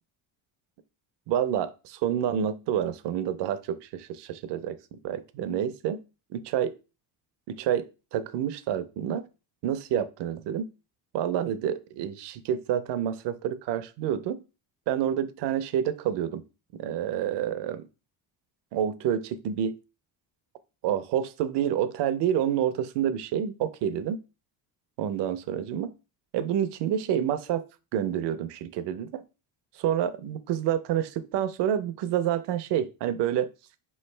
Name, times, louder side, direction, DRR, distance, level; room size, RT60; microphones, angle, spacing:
voice 1, 1.3-4.8 5.0-6.0 6.3-6.7 7.5-9.2 9.6-10.6 11.1-14.4 14.9-16.4 16.8-17.8 18.7-19.7 20.8-24.2 25.0-25.9 26.3-27.7 27.9-29.2 29.8-33.5, right 9 dB, 70° right, 12 dB, 0.7 m, -28 dB
4.9 x 3.2 x 3.2 m, 0.30 s
cardioid pair, 120°, 43 cm